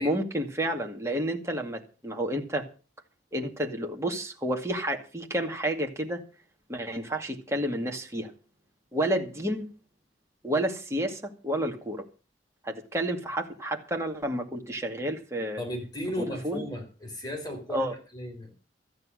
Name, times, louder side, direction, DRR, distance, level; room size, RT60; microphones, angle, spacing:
voice 1, 0.0-2.7 3.3-6.2 6.7-8.3 8.9-9.7 10.4-12.0 12.6-15.6 16.2-16.6 17.7-17.9, right 1 dB, 15° right, 2.3 m, -30 dB
voice 2, 15.6-18.5, equal, 20° left, 4.2 m, -35 dB
14.0 x 9.5 x 6.4 m
head